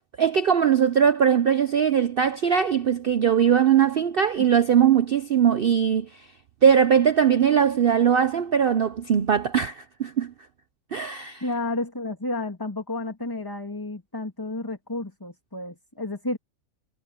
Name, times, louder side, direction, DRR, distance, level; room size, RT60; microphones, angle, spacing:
voice 1, 0.2-6.1 6.6-10.3 10.9-11.4, right 8 dB, 70° right, 0.5 m, -20 dB
voice 2, 11.4-16.4, left 2 dB, 15° left, 2.5 m, -31 dB
omnidirectional pair, 1.7 m